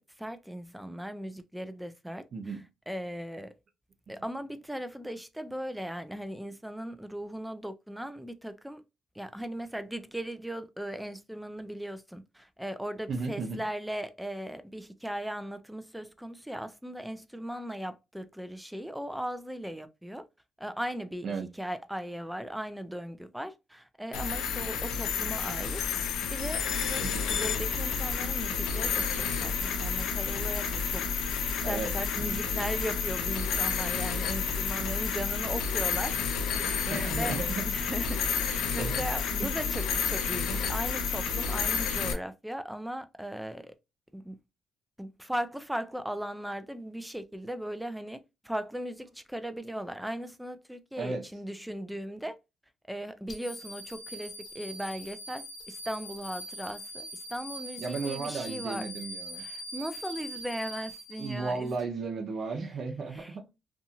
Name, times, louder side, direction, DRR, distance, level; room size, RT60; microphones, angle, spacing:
voice 1, 0.2-2.3 2.9-3.5 4.1-8.8 9.1-20.3 20.6-21.3 21.6-25.8 26.3-37.4 37.7-43.7 44.1-44.4 45.0-52.4 52.9-58.9 59.4-61.8 63.1-63.4, equal, 5° right, 0.3 m, -38 dB
voice 2, 2.3-2.6 13.1-13.6 21.2-21.5 27.0-27.3 31.6-32.4 36.9-37.7 38.8-39.1 39.4-39.5 51.0-51.2 57.8-59.4 61.2-63.5, right 4 dB, 55° right, 0.7 m, -35 dB
sound 1, 24.1-42.1, left 6 dB, 90° left, 0.4 m, -30 dB
sound 2, 53.3-61.8, equal, 50° left, 0.8 m, -42 dB
2.6 x 2.4 x 2.7 m
cardioid pair, 90°, 0 cm